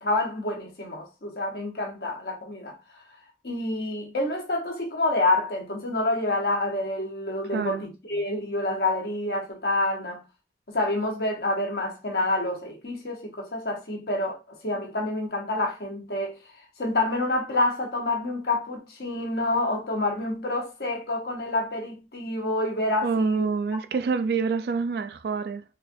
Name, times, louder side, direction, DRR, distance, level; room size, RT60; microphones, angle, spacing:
voice 1, 0.0-2.7 3.4-10.2 10.7-16.4 16.8-23.4, left 2 dB, 65° left, 1.0 m, -28 dB
voice 2, 7.5-7.9 23.0-25.6, right 5 dB, 60° right, 0.3 m, -27 dB
4.3 x 2.3 x 2.6 m
head